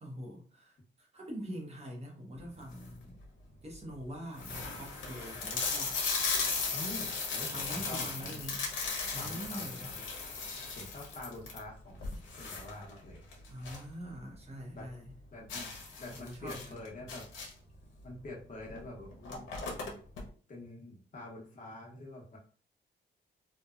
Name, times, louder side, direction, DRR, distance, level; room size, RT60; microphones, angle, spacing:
voice 1, 0.0-3.2 3.6-6.0 7.5-8.6 9.1-9.9 13.5-15.1 16.2-16.7, equal, 35° right, -1 dB, 0.8 m, -44 dB
sound 1, 2.5-3.0 3.6-3.7 4.0-4.1 4.4-13.9 14.2-14.3 14.7-14.8 15.5-17.7 18.7-18.8 19.1-20.2, left 4 dB, 85° left, 0.8 m, -36 dB
voice 2, 6.7-8.4 9.1-10.0 10.7-13.2 14.7-14.9 15.3-15.7 16.0-17.3 18.0-19.5 20.5-22.4, left 1 dB, 45° left, -2 dB, 0.9 m, -46 dB
2.8 x 2.2 x 2.3 m, 0.43 s
cardioid pair, 125°, 19 cm